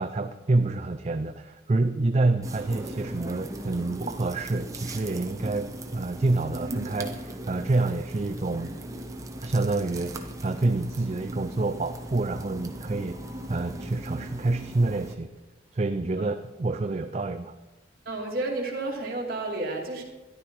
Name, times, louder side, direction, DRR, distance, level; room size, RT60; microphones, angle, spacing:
voice 1, 0.0-8.7 9.4-13.2 13.5-15.3 15.7-17.5, right 2 dB, 35° right, 6 dB, 0.4 m, -27 dB
sound 1, 2.4-15.1, right 1 dB, 15° right, 1.0 m, -38 dB
voice 2, 18.1-20.0, right 2 dB, 50° right, -1 dB, 2.5 m, -31 dB
13.5 x 11.0 x 4.6 m, 1.1 s
head